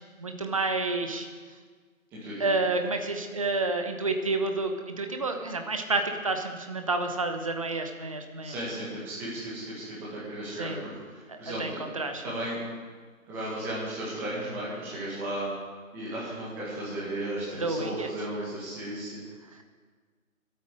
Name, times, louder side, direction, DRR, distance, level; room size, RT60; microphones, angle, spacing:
voice 1, 0.2-1.3 2.4-8.5 10.5-10.8 11.3-12.2 17.5-18.1 19.5-19.6, right 3 dB, 25° right, 5 dB, 0.9 m, -30 dB
voice 2, 2.1-2.5 8.4-11.8 12.2-12.6 13.3-15.5 15.9-19.2, right 1 dB, 5° right, -7 dB, 1.7 m, -35 dB
23.0 x 8.7 x 5.0 m, 1.5 s
figure-of-eight pair, 165°, 43 cm